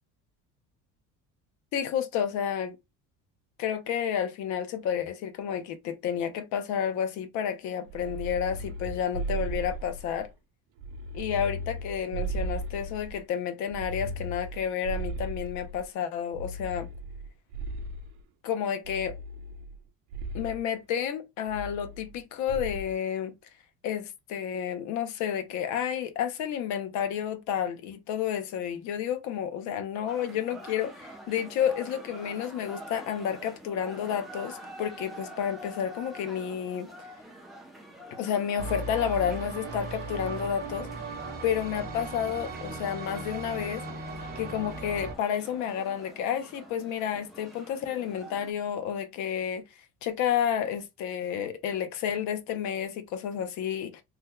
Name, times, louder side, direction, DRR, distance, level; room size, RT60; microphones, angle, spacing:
voice 1, 1.7-2.8 3.6-10.3 11.1-16.9 18.4-19.1 20.3-23.3 23.8-36.9 38.1-40.9 41.4-43.8 44.4-49.6 50.0-54.0, left 9 dB, 60° left, 0.6 m, -31 dB
sound 1, 7.9-10.3 10.8-13.2 13.7-15.9 16.3-18.2 18.8-19.8 20.1-20.6 21.5-22.2 22.5-22.9, right 2 dB, 65° right, 0.7 m, -36 dB
sound 2, 30.1-48.5, right 1 dB, ahead, 0.4 m, -47 dB
sound 3, 38.6-45.1, right 3 dB, 30° right, 0.7 m, -37 dB
2.9 x 2.1 x 3.6 m
cardioid pair, 175°, 33 cm